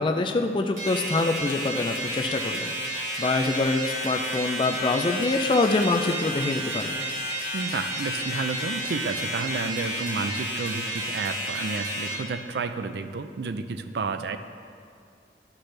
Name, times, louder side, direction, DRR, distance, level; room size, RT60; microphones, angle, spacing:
voice 1, 0.0-2.7 3.2-7.0, left 3 dB, 25° left, 4 dB, 0.3 m, -25 dB
sound 1, 0.8-12.1, equal, 40° right, 2.0 m, -31 dB
voice 2, 7.5-14.4, right 4 dB, 70° right, 9 dB, 0.4 m, -31 dB
11.5 x 6.0 x 3.3 m, 2.3 s
head